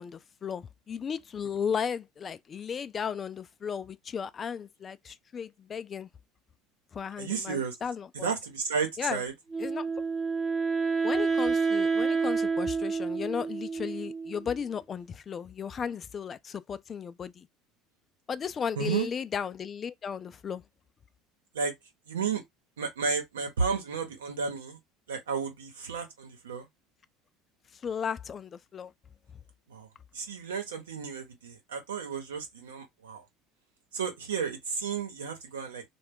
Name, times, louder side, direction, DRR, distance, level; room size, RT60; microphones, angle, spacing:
voice 1, 0.0-6.1 6.9-8.3 9.0-9.2 9.6-9.9 11.0-17.5 18.3-20.6 27.7-28.9, left 7 dB, 35° left, 0.3 m, -35 dB
voice 2, 7.2-7.7 8.2-9.3 18.8-19.1 21.5-21.7 22.1-22.4 22.8-24.8 25.1-26.7 29.7-29.9 30.1-33.2 33.9-35.8, right 5 dB, 85° right, 0.9 m, -32 dB
Wind instrument woodwind instrument, 9.5-14.6, right 4 dB, 15° right, 0.7 m, -29 dB
2.2 x 2.1 x 3.6 m
hypercardioid pair, 75°, 0 cm